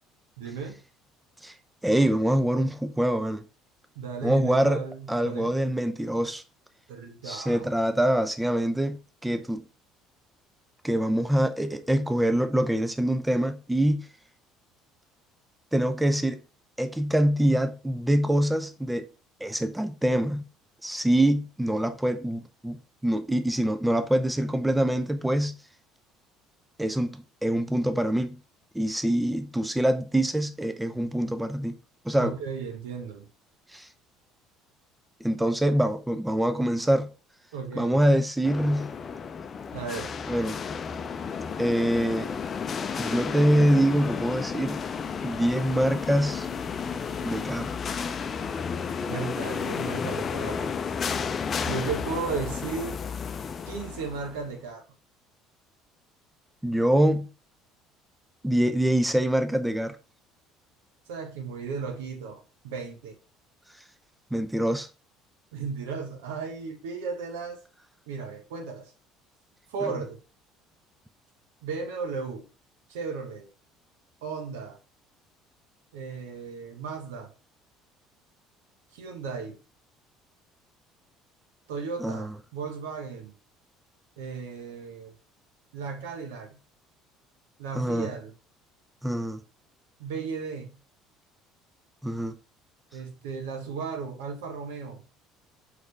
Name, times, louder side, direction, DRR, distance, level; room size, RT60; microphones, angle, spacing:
voice 1, 0.4-0.7 3.9-5.5 6.9-7.7 32.2-33.3 37.5-38.0 39.7-40.1 49.1-50.8 51.7-53.0 53.7-54.8 61.1-63.1 65.5-67.6 68.1-68.9 69.7-70.2 71.6-72.4 72.9-73.5 74.2-74.8 75.9-77.3 78.9-79.6 81.7-83.3 84.2-85.1 85.7-86.6 87.6-88.3 90.0-90.7 92.9-95.0, right 5 dB, 70° right, 1.3 m, -35 dB
voice 2, 1.8-3.4 4.2-4.8 5.1-6.4 7.2-9.6 10.8-14.1 15.7-16.4 16.8-19.1 19.4-20.4 20.8-25.6 26.8-28.4 28.7-31.8 32.0-32.3 33.7-33.9 35.2-37.1 37.8-38.9 40.3-40.6 41.6-42.3 43.0-44.8 45.2-46.5 47.2-47.7 56.6-57.3 58.4-60.0 64.3-64.9 82.0-82.3 87.8-88.1 89.0-89.4 92.0-92.3, right 1 dB, 5° right, 0.7 m, -25 dB
sound 1, 38.4-54.5, left 6 dB, 35° left, 0.6 m, -32 dB
6.4 x 4.8 x 3.3 m
figure-of-eight pair, 60°, 0 cm